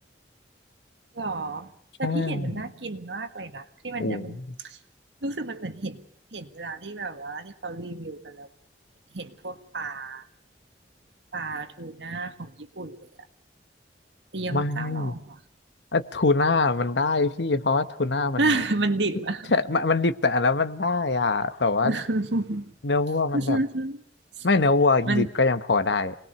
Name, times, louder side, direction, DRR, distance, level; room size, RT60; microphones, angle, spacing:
voice 1, 1.1-1.7 2.0-4.8 5.2-6.0 6.3-8.5 9.1-10.2 11.3-13.1 14.3-15.4 18.4-19.5 21.8-22.7 23.3-24.0 24.4-24.5 25.1-25.3, right 2 dB, 90° right, 8 dB, 1.8 m, -30 dB
voice 2, 2.0-2.6 4.0-4.5 14.5-15.1 15.9-18.5 19.5-21.9 22.8-23.6 24.4-26.2, left 3 dB, 80° left, 11 dB, 1.2 m, -23 dB
26.5 x 20.0 x 6.8 m, 0.63 s
head